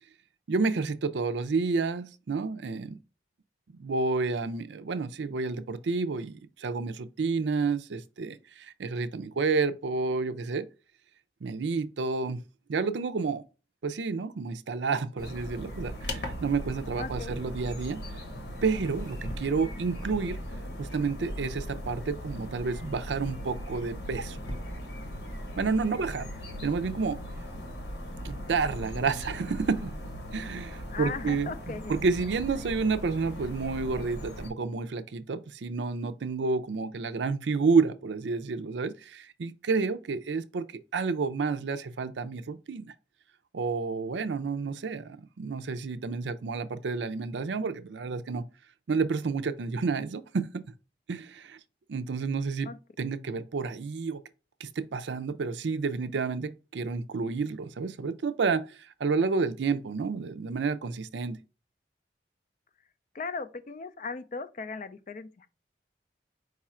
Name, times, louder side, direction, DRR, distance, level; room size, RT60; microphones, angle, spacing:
voice 1, 0.5-3.0 3.7-10.7 11.4-12.4 12.7-13.4 13.8-18.0 18.6-20.4 20.8-24.4 25.6-26.3 26.6-27.2 28.2-29.9 30.3-42.9 43.5-48.5 48.9-50.6 51.1-51.6 51.9-52.7 53.0-54.2 54.6-61.4, right 4 dB, 85° right, 0.5 m, -30 dB
sound 1, 15.2-34.5, equal, 80° left, 1.1 m, -38 dB
voice 2, 17.0-17.4 30.9-32.0 52.6-52.8 63.1-65.5, left 4 dB, 45° left, 0.3 m, -37 dB
4.8 x 2.4 x 4.2 m
head